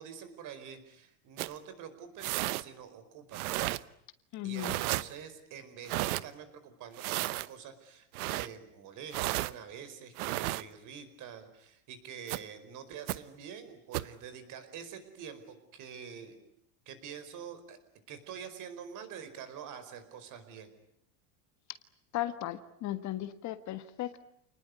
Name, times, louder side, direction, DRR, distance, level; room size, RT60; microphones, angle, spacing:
voice 1, 0.0-3.6 4.4-16.4 16.8-17.8 18.1-20.7, right 7 dB, 45° right, 11 dB, 4.9 m, -46 dB
sound 1, 1.4-1.6 2.2-2.6 3.3-3.8 4.6-5.1 5.9-6.2 7.0-7.5 8.1-8.5 9.1-9.5 10.2-10.6 12.3-12.4 13.1-13.2 13.9-14.1, right 18 dB, 80° right, 1.0 m, -33 dB
voice 2, 4.3-4.7 22.1-24.2, left 14 dB, 40° left, 11 dB, 1.6 m, -36 dB
28.5 x 20.0 x 9.7 m, 0.73 s
supercardioid pair, 135°, 43 cm